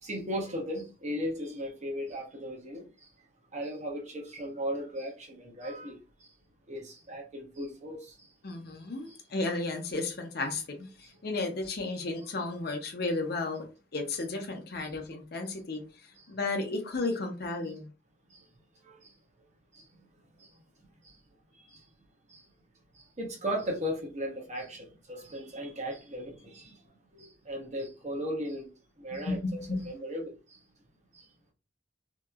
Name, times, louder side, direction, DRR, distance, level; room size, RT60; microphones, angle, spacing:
voice 1, 0.0-3.1 3.5-6.3 6.7-8.3 9.1-9.2 11.0-11.1 14.8-14.9 15.5-15.6 16.2-16.3 18.3-18.5 18.8-19.2 19.7-20.0 20.4-20.5 21.0-21.2 21.6-21.9 22.3-22.4 22.9-26.8 27.1-28.7 29.0-30.6 31.1-31.3, equal, 40° right, 0.9 m, -37 dB
voice 2, 8.4-13.7 13.9-15.8 16.3-17.9 29.3-29.9, left 3 dB, 60° left, 0.7 m, -33 dB
2.9 x 2.7 x 2.4 m
head